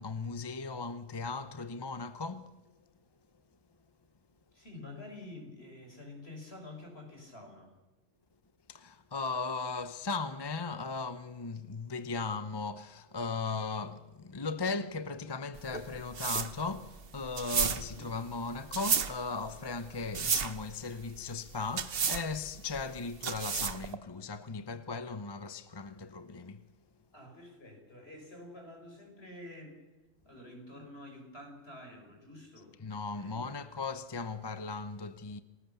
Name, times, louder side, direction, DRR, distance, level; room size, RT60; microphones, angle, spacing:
voice 1, 0.0-2.6 8.7-26.7 32.8-35.4, left 4 dB, 25° left, 0.7 m, -37 dB
voice 2, 4.5-7.7 27.1-29.8 30.2-32.8 33.2-33.7, left 2 dB, 50° left, 6.3 m, -49 dB
sound 1, 15.5-24.0, right 6 dB, 50° right, 1.2 m, -33 dB
28.0 x 19.5 x 7.0 m
omnidirectional pair, 1.3 m